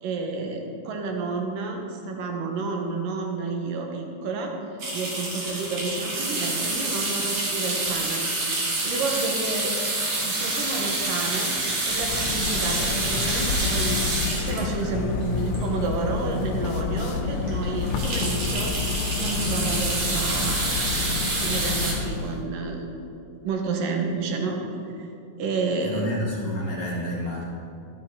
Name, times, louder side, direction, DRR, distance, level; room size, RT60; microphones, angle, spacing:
voice 1, 0.0-4.5 4.9-9.7 10.2-11.6 11.8-18.7 19.2-20.7 21.3-23.0 23.4-24.6 24.9-25.1 25.4-26.2, right 4 dB, 85° right, 2 dB, 2.7 m, -30 dB
sound 1, 4.8-16.1 16.6-16.7 16.9-17.1 17.4-21.9, right 2 dB, 50° right, 2.8 m, -27 dB
sound 2, 11.9-22.4, left 5 dB, 80° left, 1.7 m, -29 dB
voice 2, 25.8-27.4, equal, 60° left, -4 dB, 1.7 m, -29 dB
11.5 x 9.9 x 3.6 m, 2.6 s
omnidirectional pair, 3.9 m